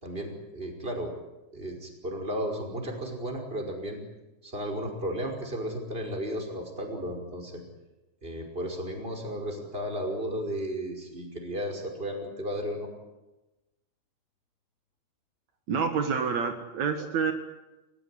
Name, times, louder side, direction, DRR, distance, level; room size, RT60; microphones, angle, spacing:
voice 1, 0.0-1.1 1.5-4.0 4.4-7.6 8.2-12.9, equal, 20° right, 2 dB, 5.5 m, -34 dB
voice 2, 15.7-17.3, right 6 dB, 70° right, 6 dB, 3.0 m, -28 dB
29.0 x 16.0 x 10.0 m, 1.0 s
omnidirectional pair, 3.3 m